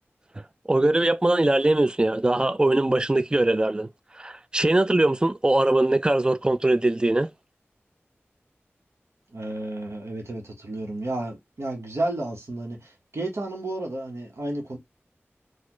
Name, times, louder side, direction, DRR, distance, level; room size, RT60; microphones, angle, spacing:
voice 1, 0.7-3.9 4.1-7.3, right 2 dB, 20° right, 0.3 m, -21 dB
voice 2, 9.3-14.8, right 2 dB, 75° right, 1.2 m, -32 dB
4.1 x 2.4 x 3.0 m
wide cardioid pair, 65°, 5 cm